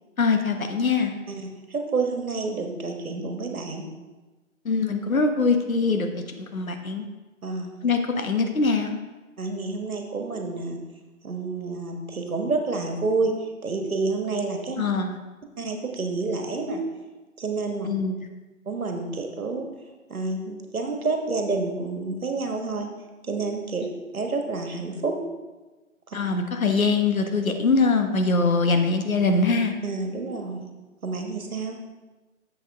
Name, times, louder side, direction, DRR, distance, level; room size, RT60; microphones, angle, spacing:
voice 1, 0.2-1.1 4.6-6.1 6.4-7.1 7.8-9.0 14.8-15.1 17.8-18.1 26.1-29.7, left 4 dB, 75° left, 6 dB, 1.2 m, -23 dB
voice 2, 1.3-3.8 7.4-7.7 9.4-10.8 11.2-14.8 15.6-16.8 17.4-17.9 18.6-19.7 20.1-22.9 23.2-23.9 24.1-25.2 26.1-26.2 29.8-30.7 31.0-31.8, right 3 dB, 80° right, 4 dB, 1.5 m, -29 dB
7.3 x 6.8 x 3.6 m, 1.2 s
figure-of-eight pair, 155°, 42 cm